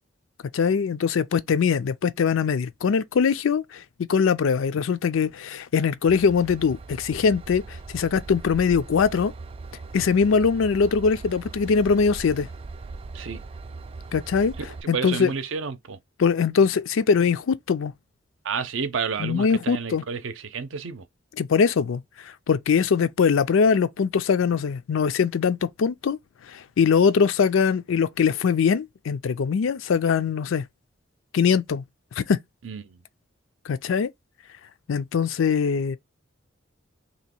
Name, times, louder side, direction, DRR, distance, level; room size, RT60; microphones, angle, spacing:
voice 1, 0.5-3.8 4.1-9.3 9.9-12.5 14.1-14.5 14.9-15.3 16.2-17.9 19.2-20.0 21.4-26.2 26.5-30.6 31.3-31.8 32.2-32.4 33.7-34.1 34.9-36.0, left 6 dB, 80° left, 0.4 m, -22 dB
Train / Engine, 6.1-14.8, right 3 dB, 30° right, 0.3 m, -39 dB
voice 2, 14.9-16.0 18.4-21.0 32.6-33.0, right 6 dB, 75° right, 0.6 m, -30 dB
3.0 x 2.9 x 4.3 m
head